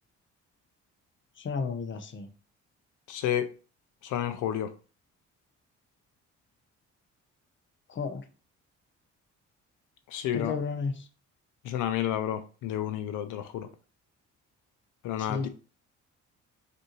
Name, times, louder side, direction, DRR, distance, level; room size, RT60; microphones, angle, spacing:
voice 1, 1.4-2.3 7.9-8.2 10.3-11.1 15.2-15.5, left 5 dB, 40° left, 0.7 m, -33 dB
voice 2, 3.1-3.5 4.0-4.7 10.1-10.6 11.6-13.7 15.0-15.5, left 10 dB, 85° left, 0.5 m, -30 dB
5.2 x 2.6 x 3.0 m
cardioid pair, 90°, 30 cm